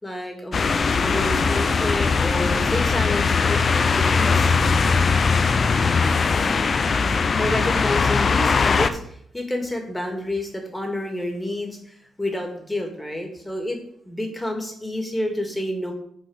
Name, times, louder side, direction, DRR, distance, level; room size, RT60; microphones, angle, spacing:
voice 1, 0.0-0.7 1.0-3.6 3.9-4.5 7.4-13.8 14.0-15.9, left 1 dB, 10° left, 3 dB, 2.2 m, -29 dB
sound 1, 0.5-8.9, left 5 dB, 45° left, 0.6 m, -20 dB
10.0 x 4.3 x 6.3 m, 0.67 s
cardioid pair, 105°, 0 cm